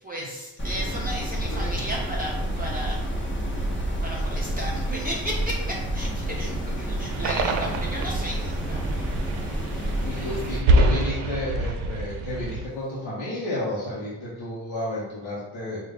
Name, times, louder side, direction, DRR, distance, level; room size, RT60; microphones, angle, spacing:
voice 1, 0.0-3.0 4.0-9.2 9.5-9.8 10.1-10.4, right 1 dB, 20° right, -4 dB, 0.6 m, -34 dB
sound 1, 0.6-10.6, right 1 dB, 25° left, 1.0 m, -29 dB
sound 2, 7.1-12.7, right 1 dB, 80° right, 0.6 m, -26 dB
voice 2, 9.8-15.8, left 1 dB, 85° left, -7 dB, 1.0 m, -32 dB
3.9 x 2.4 x 3.4 m, 1.1 s
cardioid pair, 80°, 47 cm